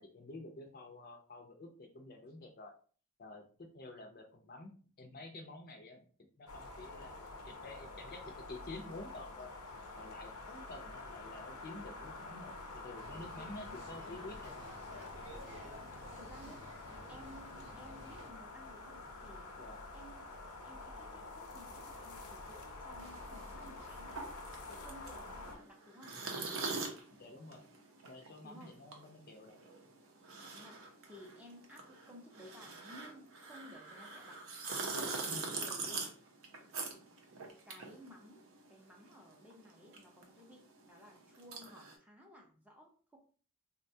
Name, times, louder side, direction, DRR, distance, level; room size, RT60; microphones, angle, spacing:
voice 1, 0.0-2.7 3.2-6.1 6.4-9.5 10.0-14.7 19.6-19.8 27.2-27.6 28.0-29.6 35.3-35.5, left 2 dB, 40° left, 3 dB, 0.5 m, -50 dB
sound 1, 6.5-25.6, left 2 dB, 90° left, 0.7 m, -48 dB
sound 2, 12.9-18.3, equal, 85° right, 1.0 m, -53 dB
voice 2, 13.4-14.0 16.2-19.5 19.9-20.2 20.6-24.2 24.7-26.2 28.4-28.7 30.5-34.4 35.0-36.1 37.3-43.2, equal, 5° right, -1 dB, 0.5 m, -57 dB
sound 3, 23.0-38.8 39.0-41.9, right 3 dB, 60° right, 0.6 m, -43 dB
3.7 x 2.2 x 2.6 m, 0.42 s
head